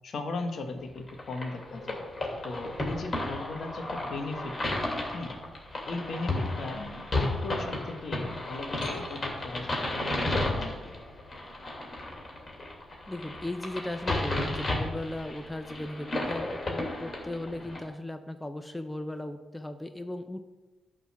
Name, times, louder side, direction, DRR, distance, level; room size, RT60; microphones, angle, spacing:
voice 1, 0.0-2.0 2.4-4.8 5.1-5.4 5.8-10.9, left 3 dB, 60° left, 5 dB, 1.3 m, -38 dB
sound 1, 1.1-17.8, left 2 dB, 40° left, 2.7 m, -33 dB
sound 2, 8.8-10.7, left 3 dB, 85° left, 0.9 m, -51 dB
voice 2, 13.1-20.4, left 1 dB, 10° left, 8 dB, 0.7 m, -37 dB
11.0 x 4.0 x 6.0 m, 1.1 s
hypercardioid pair, 40°, 0 cm